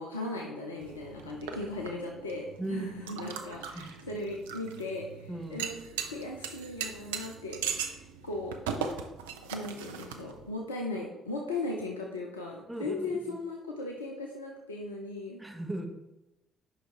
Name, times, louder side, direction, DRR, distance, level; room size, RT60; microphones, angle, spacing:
voice 1, 0.0-5.7 6.0-8.6 9.5-15.4, left 2 dB, 80° left, -1 dB, 0.7 m, -37 dB
sound 1, 0.8-10.5, right 7 dB, 70° right, 0.6 m, -39 dB
voice 2, 2.6-3.1 3.7-3.9 5.3-5.6 12.7-13.4 15.4-15.9, right 2 dB, 10° right, 4 dB, 1.2 m, -37 dB
8.8 x 5.8 x 3.4 m, 0.95 s
figure-of-eight pair, 45°, 0 cm